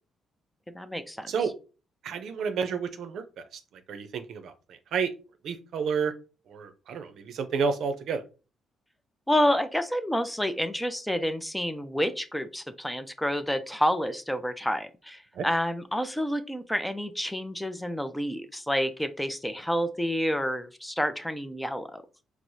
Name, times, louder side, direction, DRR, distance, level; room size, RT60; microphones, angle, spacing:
voice 1, 0.7-1.3 9.3-22.0, equal, 5° left, 9 dB, 0.4 m, -29 dB
voice 2, 2.0-3.6 3.9-5.1 5.4-6.1 6.5-8.2 15.3-15.4, right 5 dB, 70° right, 9 dB, 0.5 m, -30 dB
4.5 x 2.0 x 2.6 m, 0.33 s
cardioid pair, 90°, 0 cm